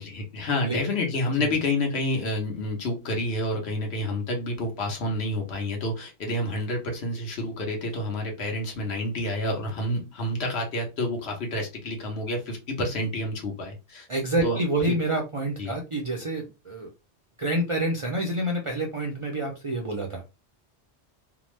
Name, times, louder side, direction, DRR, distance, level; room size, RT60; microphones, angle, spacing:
voice 1, 0.0-14.1 14.4-14.6 14.9-15.0 15.6-15.7, left 1 dB, 70° left, 1.1 m, -29 dB
voice 2, 14.1-16.9 17.4-20.2, right 1 dB, 45° right, 0.4 m, -28 dB
2.8 x 2.0 x 3.1 m
omnidirectional pair, 1.1 m